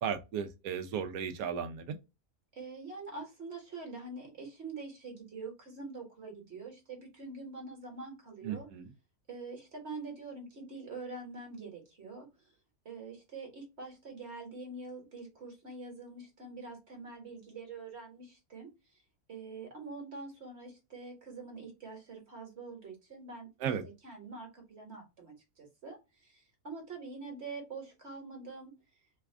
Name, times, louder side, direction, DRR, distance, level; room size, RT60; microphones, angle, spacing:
voice 1, 0.0-2.0 8.4-8.9 23.6-23.8, right 7 dB, 75° right, 1.1 m, -35 dB
voice 2, 2.5-8.7 9.3-12.3 12.8-18.7 19.3-23.5 24.0-28.7, right 3 dB, 50° right, 1.5 m, -45 dB
3.3 x 2.3 x 3.3 m
omnidirectional pair, 1.5 m